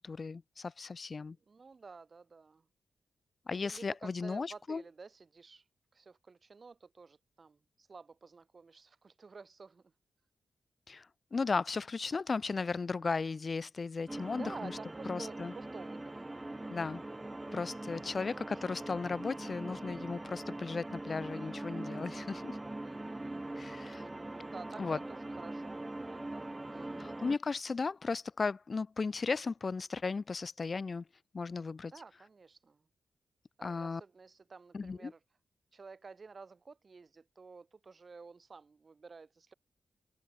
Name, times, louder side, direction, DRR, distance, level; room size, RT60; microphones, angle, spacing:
voice 1, 0.0-1.4 3.5-4.8 10.9-14.7 15.1-15.5 16.7-17.0 17.5-22.6 23.6-24.0 24.8-25.0 27.0-31.0 31.3-31.9 33.6-34.0 34.7-35.1, left 4 dB, 50° left, 0.6 m, -36 dB
voice 2, 1.5-2.7 3.5-5.6 5.9-9.9 14.4-16.8 18.2-18.5 21.8-22.3 22.8-23.6 24.2-27.2 31.8-32.8 33.6-35.2 35.7-39.5, right 4 dB, 50° right, 1.6 m, -52 dB
sound 1, 14.1-27.4, right 2 dB, 20° right, 0.4 m, -42 dB
supercardioid pair, 45°, 0 cm